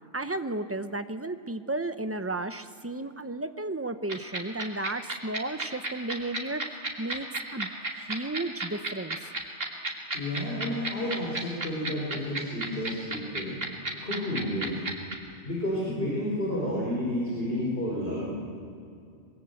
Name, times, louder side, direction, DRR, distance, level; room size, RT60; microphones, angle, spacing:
voice 1, 0.1-6.6 7.0-7.7 8.0-9.2, right 2 dB, 15° right, 9 dB, 0.8 m, -33 dB
sound 1, 4.1-15.1, right 2 dB, 90° right, 3.3 m, -31 dB
voice 2, 10.1-13.5 14.0-14.7 15.4-18.3, left 1 dB, 50° left, -5 dB, 4.9 m, -31 dB
26.0 x 22.0 x 7.9 m, 2.4 s
omnidirectional pair, 1.3 m